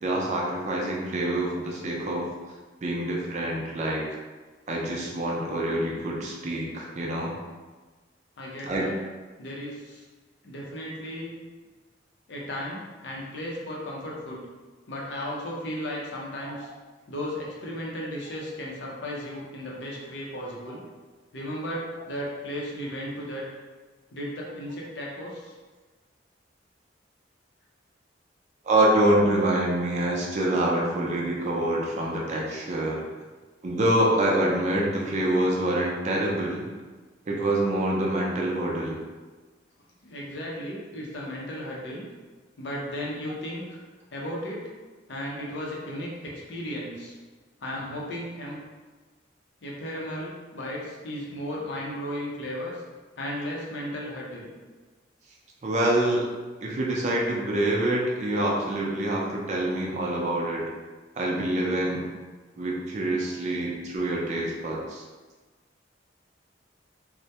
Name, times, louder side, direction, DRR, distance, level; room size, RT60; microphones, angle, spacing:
voice 1, 0.0-2.3 2.8-4.0 4.7-7.3 8.6-8.8 16.4-16.5 28.6-33.0 33.6-36.7 37.3-39.0 55.6-56.2 56.6-60.7 61.2-62.0 62.6-65.0, right 1 dB, 40° right, -3 dB, 0.4 m, -26 dB
voice 2, 8.4-9.0 9.4-10.0 10.4-11.4 12.3-14.4 14.9-16.7 17.1-20.8 21.3-23.5 24.1-25.5 40.0-42.1 42.6-43.8 44.1-44.6 45.1-47.2 47.6-48.6 49.6-52.8 53.2-54.5, equal, 65° left, -3 dB, 0.5 m, -35 dB
2.2 x 2.0 x 2.7 m, 1.3 s
head